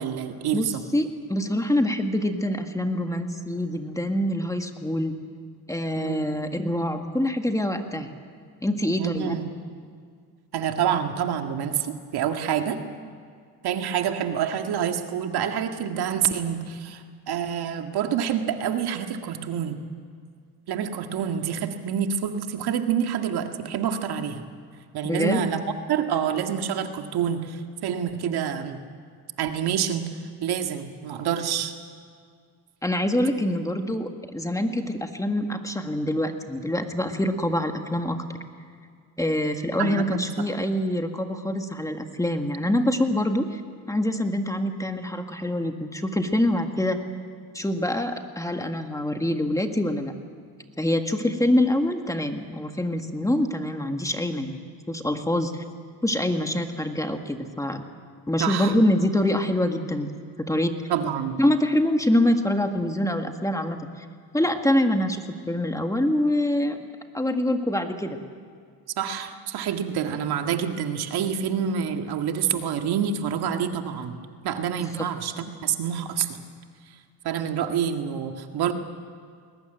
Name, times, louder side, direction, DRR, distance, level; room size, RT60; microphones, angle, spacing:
voice 1, 0.0-0.8 6.0-6.4 9.0-9.5 10.5-12.8 13.6-19.8 20.7-24.4 24.9-25.6 25.9-28.8 29.4-30.1 30.4-31.7 39.8-40.2 58.4-58.7 60.9-61.4 69.0-74.2 74.4-76.4 77.2-78.7, right 8 dB, 70° right, 5 dB, 2.0 m, -27 dB
voice 2, 0.5-5.1 5.7-8.1 8.6-9.4 25.0-25.4 32.8-38.2 39.2-43.6 43.9-47.0 47.5-50.1 50.8-54.6 54.9-55.6 56.0-57.8 58.3-60.1 60.4-60.7 61.4-63.8 64.3-66.8 67.1-68.2 74.9-75.1, left 1 dB, 10° left, 5 dB, 1.8 m, -25 dB
21.5 x 19.0 x 9.1 m, 2.1 s
cardioid pair, 105°, 40 cm